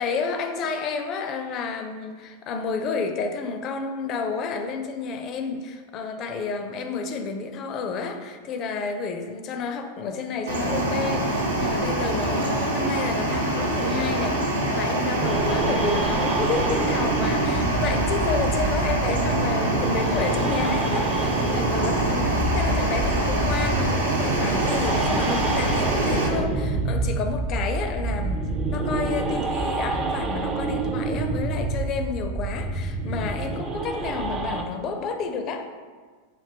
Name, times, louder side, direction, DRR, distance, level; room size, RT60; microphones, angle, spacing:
voice 1, 0.0-14.4 14.7-35.7, left 4 dB, 35° left, 6 dB, 0.4 m, -30 dB
sound 1, 10.5-26.3, right 1 dB, 70° right, 0.7 m, -25 dB
sound 2, 15.2-34.6, right 3 dB, 25° right, 0.4 m, -27 dB
5.0 x 2.5 x 3.4 m, 1.5 s
figure-of-eight pair, 90°, 0 cm